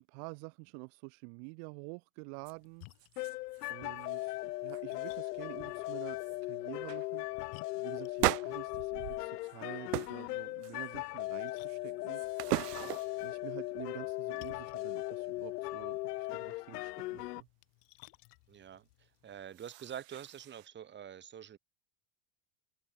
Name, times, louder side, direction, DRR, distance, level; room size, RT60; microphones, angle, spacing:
voice 1, 0.0-2.9 3.7-7.3 7.7-12.2 13.2-17.5, right 40 dB or more, 55° right, 2.9 m, -48 dB
Splash splatter, 2.3-19.4, left 40 dB or more, 55° left, 6.2 m, -62 dB
sound 1, 2.4-2.5 2.9-3.7 4.0-4.3 4.7-5.2 5.7-5.8 6.2-6.4 6.9-7.1 8.2-9.6 9.9-10.2 10.6-11.1 11.7-13.3 19.3-20.7, right 20 dB, 85° right, 1.1 m, -38 dB
sound 2, 3.2-17.4, left 20 dB, 90° left, 1.0 m, -38 dB
voice 2, 18.5-18.9 19.2-21.6, right 9 dB, 25° right, 6.5 m, -46 dB
supercardioid pair, 160°, 46 cm